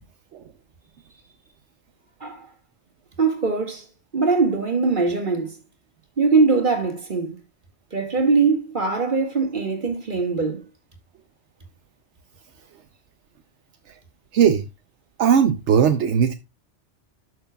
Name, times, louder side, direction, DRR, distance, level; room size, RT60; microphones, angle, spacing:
voice 1, 3.2-3.9 4.1-5.5 6.2-7.4 7.9-10.6, right 4 dB, 45° right, 2.0 m, -21 dB
voice 2, 15.2-16.3, right 8 dB, 75° right, 1.0 m, -18 dB
12.0 x 6.4 x 2.2 m
omnidirectional pair, 1.2 m